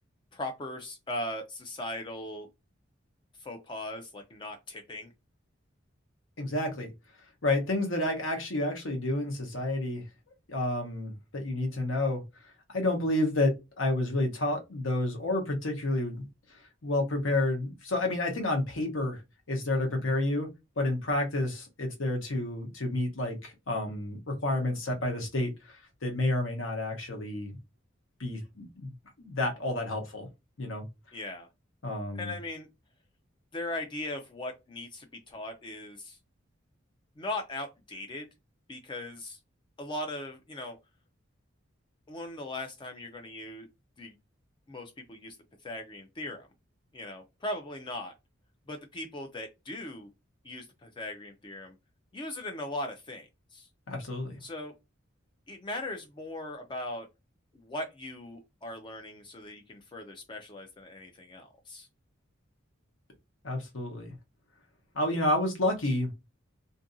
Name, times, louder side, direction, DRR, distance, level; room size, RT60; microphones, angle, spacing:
voice 1, 0.3-2.5 3.4-5.1 31.1-31.5 32.1-32.7 33.5-36.2 37.2-38.3 38.7-39.4 39.8-40.8 42.1-43.7 44.0-44.1 44.7-45.4 45.6-46.5 46.9-48.1 48.7-50.1 50.4-51.8 52.1-53.7 54.4-54.7 55.5-57.1 57.5-61.9, left 1 dB, 25° left, 0.3 m, -39 dB
voice 2, 6.4-6.9 7.4-10.0 10.5-12.2 12.7-16.2 16.8-19.2 19.5-20.5 20.8-27.6 28.2-28.9 29.2-30.3 30.6-30.8 31.8-32.3 53.9-54.4 63.4-64.1 64.9-66.1, left 2 dB, 75° left, 0.9 m, -30 dB
2.6 x 2.5 x 2.5 m
head